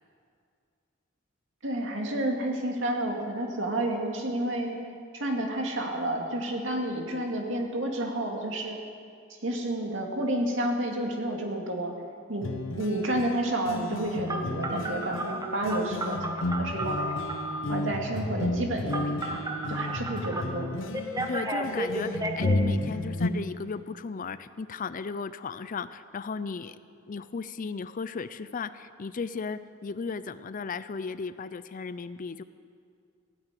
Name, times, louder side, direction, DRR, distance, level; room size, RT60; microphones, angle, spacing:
voice 1, 1.6-4.8 5.1-8.8 9.4-11.9 12.3-12.5 12.8-17.1 17.7-20.7, right 1 dB, 70° right, 1 dB, 2.5 m, -30 dB
sound 1, 12.4-23.3, left 2 dB, 75° left, 0.9 m, -32 dB
Telephone, 14.3-17.6 18.9-20.4 20.9-22.6, right 1 dB, 20° right, 1.2 m, -33 dB
voice 2, 21.3-26.8 27.1-32.4, left 5 dB, 40° left, 14 dB, 0.5 m, -35 dB
16.5 x 8.9 x 9.1 m, 2.3 s
head